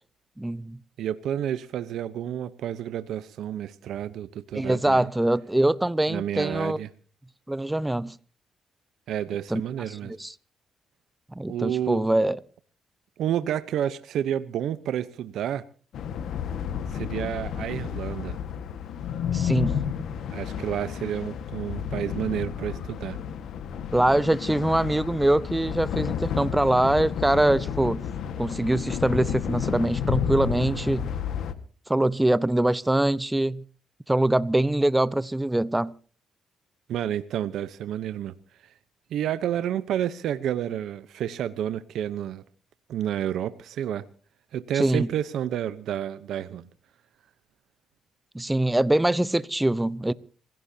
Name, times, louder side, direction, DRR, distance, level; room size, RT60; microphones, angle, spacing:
voice 1, 0.4-0.8 4.5-6.8 7.5-8.1 9.5-9.6 9.9-10.3 11.3-12.4 19.3-19.8 23.9-28.0 28.4-31.1 31.9-33.6 34.1-35.9 44.7-45.1 48.3-50.1, right 1 dB, 10° right, 0.8 m, -23 dB
voice 2, 1.0-5.1 6.1-6.9 9.1-10.2 11.5-12.1 13.2-15.6 16.9-18.4 20.3-23.2 36.9-38.3 38.6-38.7 39.1-42.4 42.9-44.0 44.5-46.7, right 10 dB, 75° right, 0.8 m, -30 dB
sound 1, 15.9-31.5, left 8 dB, 70° left, 1.6 m, -31 dB
27.0 x 17.0 x 2.8 m
cardioid pair, 90°, 0 cm